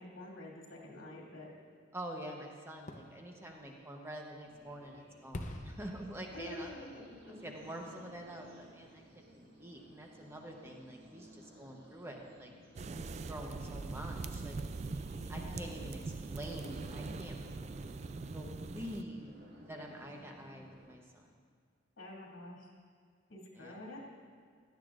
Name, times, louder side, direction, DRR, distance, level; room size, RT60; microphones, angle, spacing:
voice 1, 0.0-1.5 6.3-7.5 15.2-15.7 22.0-22.7 23.3-24.0, left 1 dB, 90° left, -3 dB, 2.7 m, -47 dB
voice 2, 1.9-6.7 7.4-12.5 13.1-14.5 15.3-16.0 16.3-17.4 18.3-19.3 19.7-21.3 23.6-23.8, equal, 15° right, 0 dB, 0.9 m, -46 dB
Fireworks, 2.8-8.6 9.0-9.1, left 1 dB, 40° left, 0.7 m, -49 dB
sound 1, 4.4-21.0, right 1 dB, 55° right, 2.0 m, -57 dB
sound 2, 12.8-19.0, right 3 dB, 35° right, 0.3 m, -42 dB
16.0 x 11.5 x 2.5 m, 2.1 s
head